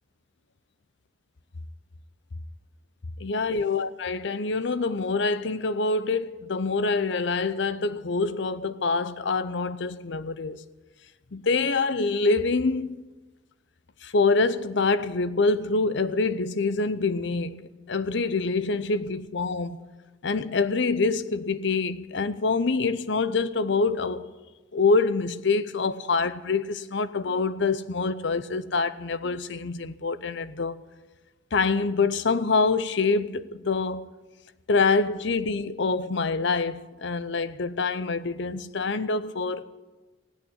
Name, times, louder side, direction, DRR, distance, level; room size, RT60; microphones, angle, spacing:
voice 1, 3.2-10.6 11.3-12.9 14.0-19.8 20.2-24.3 24.7-30.8 31.5-34.1 34.7-39.6, left 4 dB, 65° left, 0.7 m, -25 dB
16.5 x 8.7 x 9.8 m
head